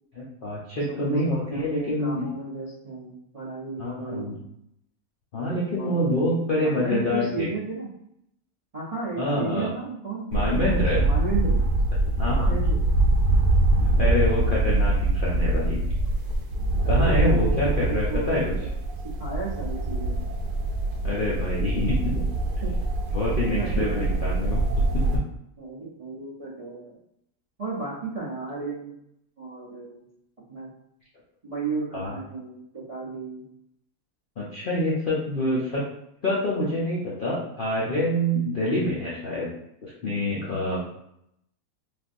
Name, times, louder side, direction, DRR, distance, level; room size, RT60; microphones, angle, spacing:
voice 1, 0.2-2.3 3.8-4.4 5.3-7.5 9.2-9.7 10.3-11.0 12.0-12.5 13.8-15.8 16.9-18.5 21.0-22.2 23.1-24.6 31.9-32.2 34.4-35.8 36.2-39.5 39.8-40.8, left 1 dB, 65° left, -5 dB, 0.5 m, -26 dB
voice 2, 0.9-4.3 5.8-6.3 6.8-7.9 8.7-11.6 12.2-12.9 13.8-14.3 16.8-18.7 19.2-20.2 22.6-22.7 23.6-24.1 25.6-27.0 27.6-28.9 29.4-30.0 30.5-30.7 31.4-33.4, right 4 dB, 55° right, -8 dB, 0.4 m, -34 dB
sound 1, 10.3-25.2, right 2 dB, 80° right, 1.1 m, -24 dB
3.4 x 2.5 x 2.5 m, 0.76 s
omnidirectional pair, 1.6 m